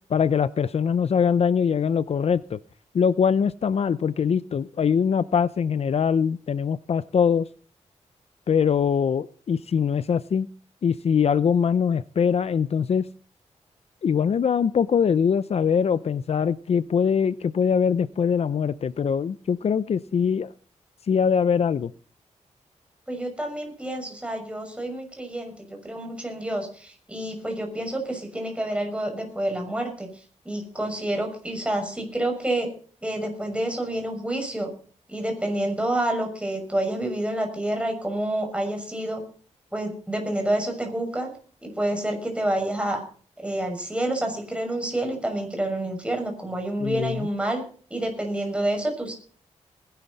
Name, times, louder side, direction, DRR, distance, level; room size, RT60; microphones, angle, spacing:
voice 1, 0.1-2.6 2.9-7.5 8.5-10.5 10.8-13.1 14.0-20.5 21.1-21.9 46.8-47.3, left 7 dB, 55° left, 16 dB, 0.6 m, -22 dB
voice 2, 23.1-30.1 30.4-32.7 33.0-34.7 35.1-39.2 39.7-41.3 41.6-43.0 43.4-47.6 47.9-49.1, right 1 dB, 10° right, 3 dB, 6.2 m, -28 dB
19.5 x 11.5 x 4.1 m, 0.43 s
cardioid pair, 90°, 12 cm